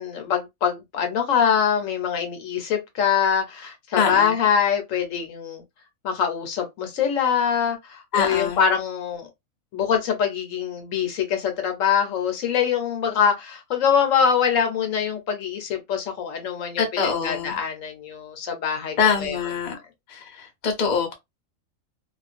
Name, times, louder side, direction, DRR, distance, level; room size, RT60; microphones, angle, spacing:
voice 1, 0.0-5.6 6.0-9.3 9.7-16.8 17.2-18.9 19.2-19.4, left 7 dB, 75° left, 1.0 m, -24 dB
voice 2, 4.0-4.4 8.1-8.6 16.8-17.6 19.0-19.8 20.1-21.1, left 6 dB, 45° left, 0.6 m, -24 dB
2.4 x 2.1 x 2.4 m
omnidirectional pair, 1.5 m